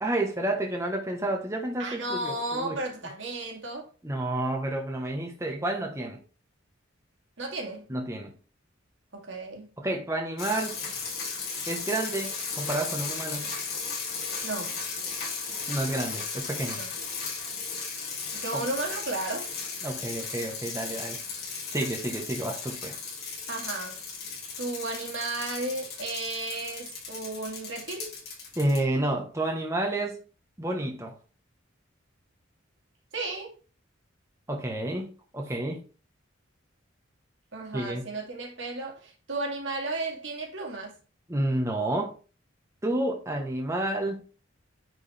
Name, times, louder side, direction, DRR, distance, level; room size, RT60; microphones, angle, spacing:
voice 1, 0.0-2.8 4.0-6.2 7.9-8.3 9.8-10.8 11.7-13.6 15.7-16.8 18.5-18.7 19.8-21.2 21.7-23.0 28.6-30.2 30.6-31.1 34.5-35.8 37.7-38.0 41.3-42.2 42.8-44.2, right 1 dB, 15° right, 1.1 m, -30 dB
voice 2, 1.8-3.9 7.4-7.9 9.1-9.7 14.4-14.8 16.8-16.9 18.3-19.5 23.5-24.0 24.6-28.2 33.1-33.5 37.5-41.0, right 2 dB, 65° right, 2.2 m, -34 dB
sound 1, 10.4-28.8, left 5 dB, 55° left, 3.8 m, -36 dB
9.8 x 4.7 x 3.5 m
head